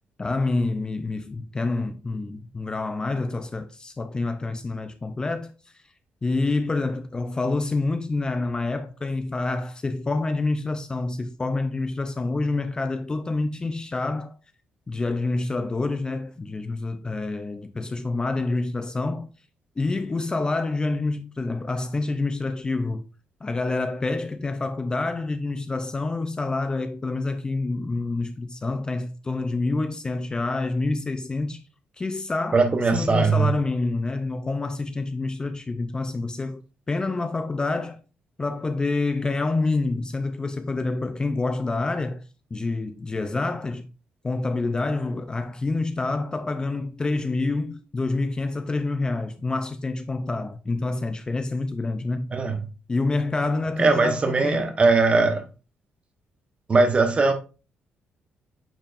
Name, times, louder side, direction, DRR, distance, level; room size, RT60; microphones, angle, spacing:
voice 1, 0.2-5.8 6.2-14.3 14.9-19.3 19.8-23.0 23.4-31.6 32.0-32.6 32.9-36.6 36.9-38.0 38.4-42.3 42.5-43.9 44.2-52.3 52.9-54.8, left 3 dB, 20° left, 0.4 m, -27 dB
voice 2, 32.5-33.5 52.3-52.6 53.8-55.4 56.7-57.3, right 3 dB, 30° right, 1.0 m, -20 dB
8.9 x 4.5 x 2.5 m
cardioid pair, 130°, 4 cm